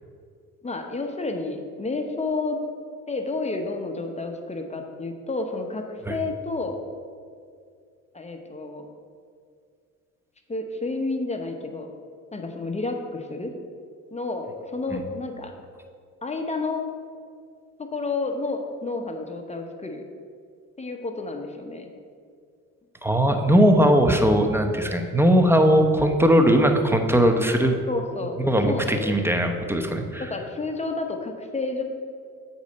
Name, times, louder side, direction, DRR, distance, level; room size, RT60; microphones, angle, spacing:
voice 1, 0.6-2.6 3.1-6.8 8.1-8.9 10.5-11.9 12.3-13.5 14.1-15.5 16.2-16.9 17.8-20.0 20.8-21.9 27.9-29.4 30.2-31.8, left 3 dB, 20° left, 4 dB, 0.9 m, -30 dB
voice 2, 23.0-27.8 28.4-30.3, equal, 5° right, 5 dB, 0.8 m, -19 dB
8.3 x 4.2 x 5.2 m, 2.2 s
cardioid pair, 75°, 33 cm